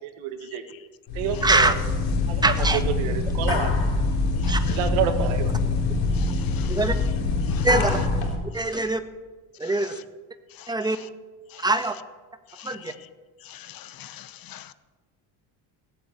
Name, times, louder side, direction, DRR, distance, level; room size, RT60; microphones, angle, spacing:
voice 1, 0.2-0.6 1.2-1.7 2.3-2.4 3.0-3.7 4.7-5.5, right 8 dB, 75° right, 7 dB, 2.0 m, -28 dB
sound 1, 1.1-8.4, left 3 dB, 65° left, 4.2 m, -24 dB
voice 2, 1.4-1.7 2.4-2.8 3.5-3.6 4.5-4.7 6.7-7.0 7.6-8.0 8.5-9.0 9.6-10.0 10.7-11.0 11.6-11.9 12.6-12.9, right 2 dB, 10° right, 8 dB, 1.4 m, -23 dB
voice 3, 4.4-4.8 6.1-6.8 7.4-7.7 10.5-10.7 11.5-11.6 12.5-12.9 13.4-14.7, left 11 dB, 45° left, 14 dB, 0.9 m, -39 dB
17.5 x 8.5 x 8.1 m, 1.3 s
supercardioid pair, 95°, 47 cm